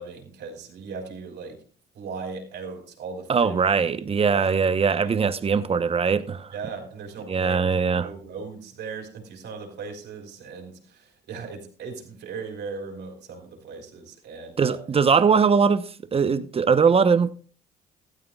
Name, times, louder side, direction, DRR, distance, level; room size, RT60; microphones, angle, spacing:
voice 1, 0.0-1.6 1.9-3.6 4.3-4.5 5.0-5.2 5.5-5.7 6.5-14.8, right 4 dB, 65° right, 4.5 m, -38 dB
voice 2, 3.3-6.5 7.3-8.1 14.6-17.3, right 5 dB, 30° right, 1.0 m, -21 dB
16.0 x 13.0 x 2.4 m
supercardioid pair, 85°, 19 cm